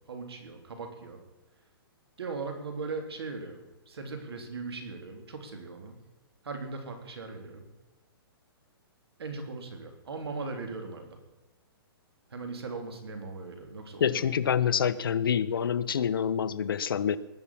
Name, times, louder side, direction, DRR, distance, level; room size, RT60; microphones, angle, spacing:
voice 1, 0.1-1.2 2.2-6.0 6.4-7.7 9.2-11.2 12.3-14.2, right 4 dB, 85° right, 3.4 m, -39 dB
voice 2, 14.0-17.2, left 8 dB, 65° left, 0.8 m, -27 dB
19.5 x 7.3 x 8.6 m
hypercardioid pair, 175°, 13 cm